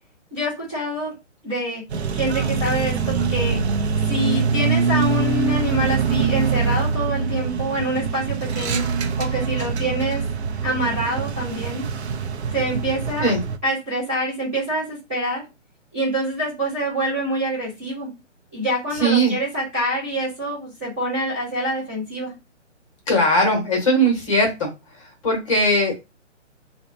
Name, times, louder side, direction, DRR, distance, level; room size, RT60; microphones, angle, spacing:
voice 1, 0.3-1.1 1.4-1.8 2.1-3.6 4.1-8.9 9.2-10.2 10.6-11.8 12.5-13.3 13.6-15.4 15.9-18.1 18.5-22.3, right 1 dB, 10° right, -10 dB, 0.5 m, -26 dB
sound 1, 1.9-13.6, right 5 dB, 60° right, 0.5 m, -24 dB
voice 2, 19.0-19.4 23.1-24.7 25.2-25.9, right 1 dB, 25° left, 2 dB, 0.9 m, -19 dB
2.8 x 2.1 x 2.5 m, 0.24 s
hypercardioid pair, 145°, 37 cm